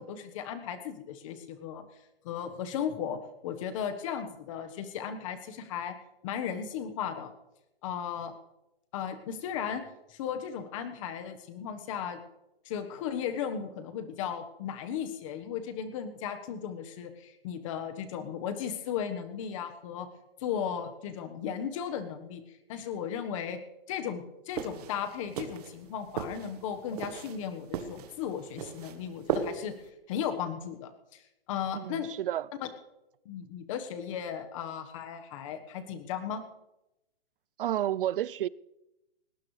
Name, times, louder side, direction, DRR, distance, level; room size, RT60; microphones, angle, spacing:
voice 1, 0.0-1.8 2.2-5.9 6.2-7.3 7.8-8.3 8.9-9.8 10.1-12.2 12.6-20.1 20.4-22.4 22.7-23.6 23.9-29.7 30.1-31.2 31.5-32.1 32.6-32.7 33.2-36.4, left 8 dB, 35° left, 8 dB, 1.4 m, -36 dB
sound 1, 24.5-29.9, right 7 dB, 40° right, 1.4 m, -37 dB
voice 2, 31.7-32.5 37.6-38.5, right 12 dB, 65° right, 22 dB, 0.5 m, -30 dB
20.5 x 18.5 x 3.3 m, 0.94 s
hypercardioid pair, 160°, 30 cm